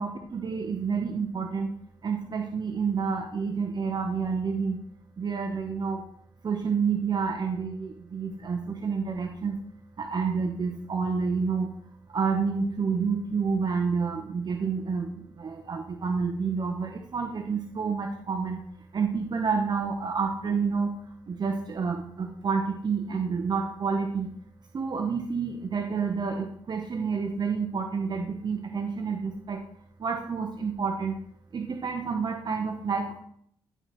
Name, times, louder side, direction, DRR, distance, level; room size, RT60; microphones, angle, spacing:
voice 1, 0.0-1.7 2.0-4.8 5.2-6.0 6.4-9.6 10.0-11.7 12.1-18.6 18.9-21.0 21.3-24.3 24.7-29.6 30.0-31.2 31.5-33.2, right 5 dB, 50° right, 4 dB, 0.8 m, -29 dB
11.5 x 4.5 x 3.0 m, 0.66 s
cardioid pair, 70°, 9 cm